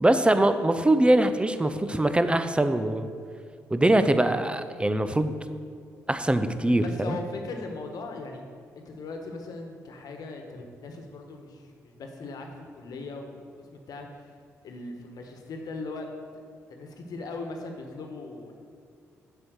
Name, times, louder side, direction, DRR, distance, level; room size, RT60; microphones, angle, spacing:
voice 1, 0.0-3.1 3.7-5.3 6.1-7.2, right 1 dB, 15° right, 10 dB, 0.6 m, -22 dB
voice 2, 6.8-8.4 8.8-12.5 12.7-13.4 13.7-14.1 14.6-16.0 16.7-18.5, left 3 dB, 60° left, 3 dB, 1.2 m, -39 dB
7.6 x 5.5 x 6.3 m, 2.3 s
hypercardioid pair, 45°, 7 cm